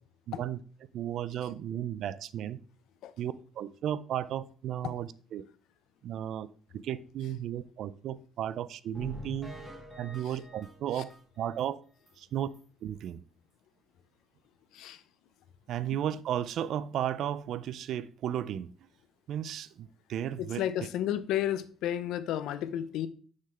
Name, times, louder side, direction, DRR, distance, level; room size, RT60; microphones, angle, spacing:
voice 1, 0.3-0.6 0.9-2.6 3.2-5.4 6.0-6.5 6.7-9.5 10.0-11.8 12.2-12.5 12.8-13.2 15.7-18.7 19.3-20.9, right 10 dB, 60° right, 0.3 m, -34 dB
sound 1, 8.9-11.7 12.1-12.2 12.5-12.6 13.0-13.1, equal, 5° right, 1.3 m, -46 dB
voice 2, 20.6-23.1, left 11 dB, 80° left, 0.5 m, -31 dB
6.4 x 3.8 x 4.2 m
cardioid pair, 150°, 0 cm